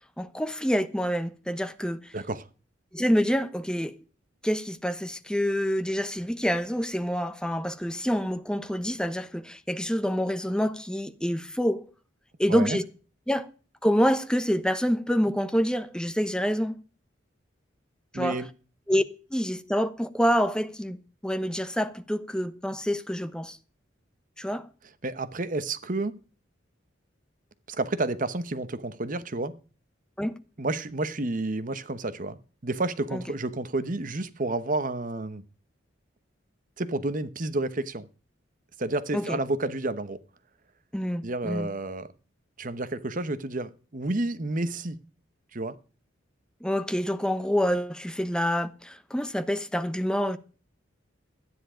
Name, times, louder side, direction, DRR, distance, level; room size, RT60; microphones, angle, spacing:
voice 1, 0.2-2.0 2.9-3.9 4.4-11.9 12.4-12.8 13.3-13.5 13.8-16.7 18.1-18.4 18.9-19.0 19.3-23.6 24.4-24.7 30.2-30.3 33.1-33.2 39.1-39.4 40.9-41.7 46.6-50.4, equal, 5° left, 1.0 m, -27 dB
voice 2, 2.1-2.5 12.5-12.8 18.1-18.5 25.0-26.1 27.7-29.5 30.6-35.4 36.8-38.1 38.8-40.2 41.2-42.1 42.6-45.0 45.5-45.8, right 2 dB, 45° right, 1.0 m, -30 dB
13.0 x 10.0 x 5.0 m
head